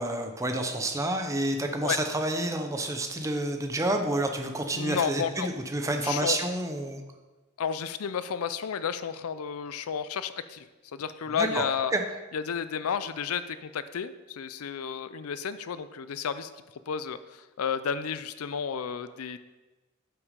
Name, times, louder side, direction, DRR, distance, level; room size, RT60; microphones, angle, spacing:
voice 1, 0.0-7.0 11.4-11.7 11.9-12.0, right 1 dB, 15° right, 5 dB, 0.7 m, -29 dB
voice 2, 4.7-5.5 6.0-6.4 7.6-10.7 10.9-11.9 12.3-16.5 16.9-19.4, left 7 dB, 85° left, 13 dB, 0.5 m, -32 dB
8.0 x 6.0 x 5.1 m, 1.2 s
head